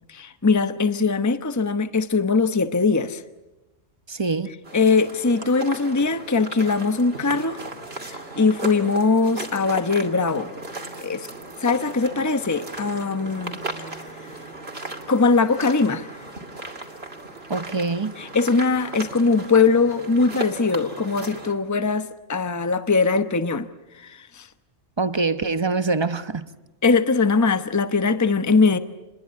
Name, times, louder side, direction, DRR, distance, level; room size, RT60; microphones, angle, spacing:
voice 1, 0.1-3.2 4.7-7.6 8.0-10.5 11.0-11.3 11.6-13.6 15.1-16.1 18.2-23.7 23.9-24.5 26.8-28.8, left 4 dB, 15° left, 10 dB, 0.9 m, -21 dB
voice 2, 4.1-4.5 17.5-18.1 25.0-26.4, right 3 dB, 25° right, 11 dB, 1.0 m, -24 dB
sound 1, 4.6-21.5, right 2 dB, 50° right, 3.0 m, -36 dB
28.0 x 21.5 x 9.6 m, 1.0 s
omnidirectional pair, 1.3 m